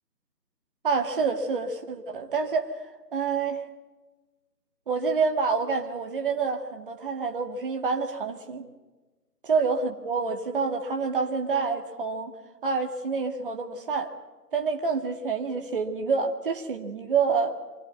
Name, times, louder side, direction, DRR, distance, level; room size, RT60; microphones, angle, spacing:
voice 1, 0.8-2.8 3.1-3.6 4.9-8.7 9.4-12.3 12.6-14.1 14.5-17.6, right 5 dB, 35° right, 4 dB, 2.2 m, -27 dB
25.5 x 16.5 x 9.3 m, 1.2 s
figure-of-eight pair, 155°, 47 cm